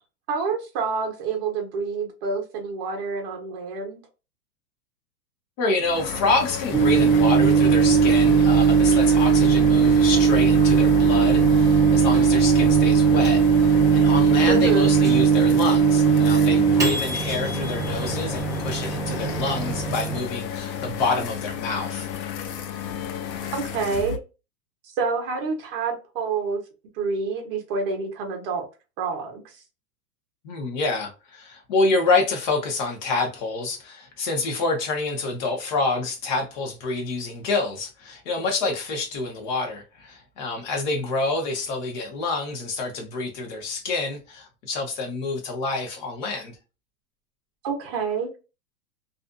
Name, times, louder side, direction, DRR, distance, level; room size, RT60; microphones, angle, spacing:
voice 1, 0.3-4.0 14.5-14.9 23.5-24.2 24.9-26.6 26.9-28.7 29.0-29.6 47.6-48.3, right 5 dB, 35° right, 0.8 m, -27 dB
voice 2, 5.6-22.1 30.4-46.6, left 3 dB, 30° left, 0.6 m, -27 dB
sound 1, 5.8-24.2, left 8 dB, 85° left, 0.7 m, -32 dB
Microwave oven, 6.7-20.2, right 6 dB, 5° right, 0.8 m, -19 dB
2.5 x 2.4 x 2.2 m
supercardioid pair, 160°, 48 cm